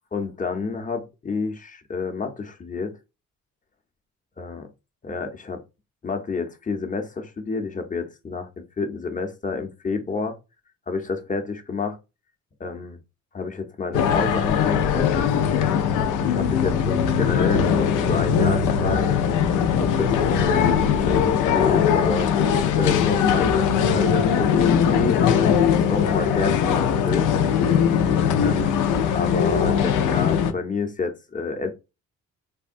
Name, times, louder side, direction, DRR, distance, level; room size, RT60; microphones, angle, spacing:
voice 1, 0.1-3.0 4.4-4.7 5.0-5.6 6.0-10.4 10.9-12.0 12.6-13.0 13.3-15.7 16.2-19.1 19.8-22.3 22.8-27.3 28.4-31.7, left 4 dB, 25° left, 0.7 m, -29 dB
sound 1, 13.9-30.5, left 7 dB, 90° left, 0.5 m, -20 dB
3.5 x 2.2 x 2.5 m
cardioid pair, 90°, 30 cm